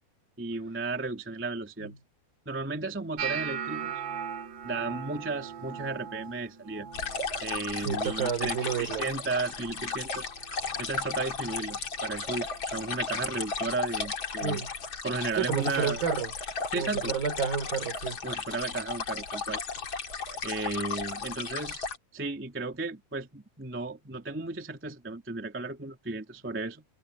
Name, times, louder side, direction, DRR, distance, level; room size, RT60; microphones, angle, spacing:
voice 1, 0.4-1.9 2.4-4.0 4.6-6.9 7.4-10.3 10.8-14.6 15.0-16.0 16.7-17.1 18.2-19.6 20.4-26.8, right 3 dB, 5° right, 1.1 m, -34 dB
sound 1, 3.2-9.3 9.5-10.1 10.4-11.0 11.6-11.8 13.5-13.6, right 7 dB, 80° right, 5.5 m, -39 dB
sound 2, 6.9-22.0, left 4 dB, 35° left, 2.7 m, -35 dB
voice 2, 7.8-9.1 14.4-14.7 15.4-16.3 16.7-18.2, right 7 dB, 65° right, 6.1 m, -30 dB
omnidirectional pair, 4.5 m